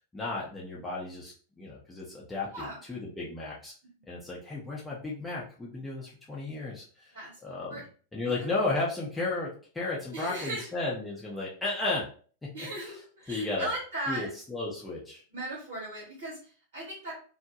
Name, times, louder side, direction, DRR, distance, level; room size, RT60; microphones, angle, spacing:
voice 1, 0.1-3.7 4.1-7.8 8.1-9.5 9.7-12.0 13.3-13.7 14.1-15.2, left 2 dB, 10° left, -6 dB, 0.6 m, -34 dB
voice 2, 10.1-10.7 12.5-14.3 15.3-17.1, right 1 dB, 55° right, -5 dB, 1.0 m, -37 dB
2.1 x 2.0 x 2.8 m, 0.42 s
figure-of-eight pair, 90°, 0 cm